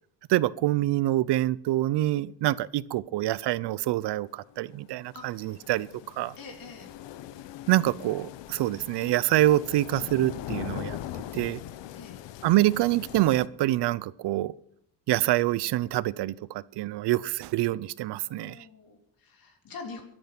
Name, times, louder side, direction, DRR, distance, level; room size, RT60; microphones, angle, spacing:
voice 1, 0.3-5.9 6.2-6.3 7.7-11.0 11.3-11.6 12.4-14.5 15.1-18.6, right 15 dB, 70° right, 20 dB, 0.6 m, -26 dB
sound 1, 4.5-13.5, left 12 dB, 85° left, 1.0 m, -41 dB
voice 2, 6.4-6.9 11.9-12.2 18.3-20.0, left 4 dB, 55° left, 4 dB, 3.4 m, -44 dB
22.5 x 8.9 x 6.0 m, 0.70 s
cardioid pair, 140°, 42 cm